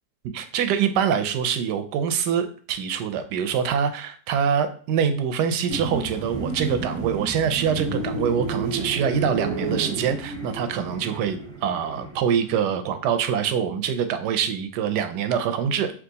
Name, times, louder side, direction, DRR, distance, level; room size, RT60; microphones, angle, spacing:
voice 1, 0.3-15.9, right 7 dB, 85° right, 9 dB, 1.2 m, -24 dB
sound 1, 5.7-12.3, right 3 dB, 25° right, 0.7 m, -31 dB
3.5 x 3.1 x 3.9 m, 0.42 s
omnidirectional pair, 1.8 m